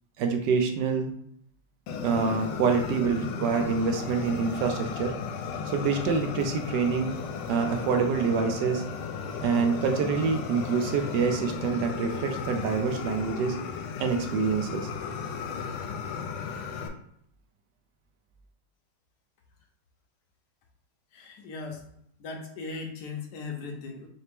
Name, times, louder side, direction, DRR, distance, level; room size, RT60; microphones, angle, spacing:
voice 1, 0.2-1.1 2.0-5.1 5.7-7.2 7.5-8.8 9.4-13.6 14.0-14.9, right 5 dB, 75° right, 5 dB, 1.0 m, -26 dB
Fire, 1.9-16.9, left 6 dB, 85° left, 1.4 m, -35 dB
voice 2, 21.1-21.8 22.2-24.1, left 4 dB, 65° left, 2 dB, 1.1 m, -38 dB
4.3 x 2.9 x 3.4 m, 0.69 s
omnidirectional pair, 2.3 m